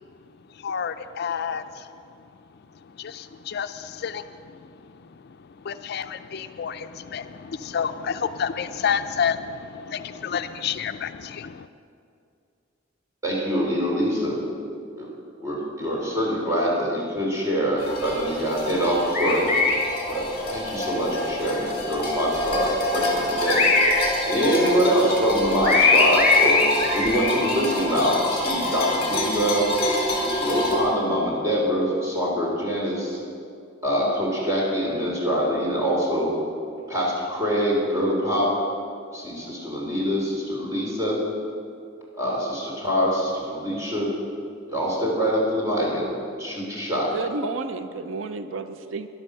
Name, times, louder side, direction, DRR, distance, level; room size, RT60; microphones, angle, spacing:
voice 1, 0.5-1.9 2.8-11.7, left 7 dB, 55° left, 10 dB, 0.4 m, -30 dB
voice 2, 13.2-14.5 14.9-15.1 15.4-19.7 20.1-23.9 24.2-26.7 26.9-29.6 30.1-33.2 33.8-36.3 36.9-38.5 39.1-41.2 42.2-44.1 44.7-46.1 46.4-47.1, equal, 15° right, -5 dB, 3.6 m, -24 dB
sound 1, 17.8-30.8, left 2 dB, 30° left, 3.5 m, -24 dB
voice 3, 47.1-49.1, right 3 dB, 85° right, 10 dB, 0.6 m, -31 dB
11.5 x 11.0 x 6.6 m, 2.4 s
head